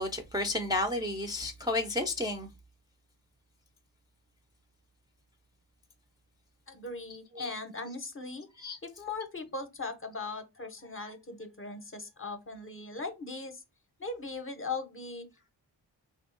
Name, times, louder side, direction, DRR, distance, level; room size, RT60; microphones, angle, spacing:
voice 1, 0.0-2.5 7.4-7.5 8.6-8.8, left 2 dB, 10° right, 0.3 m, -31 dB
voice 2, 6.7-8.5 8.8-13.6 14.0-15.3, left 3 dB, 30° left, 0.6 m, -39 dB
3.5 x 2.7 x 2.4 m
wide cardioid pair, 95°, 41 cm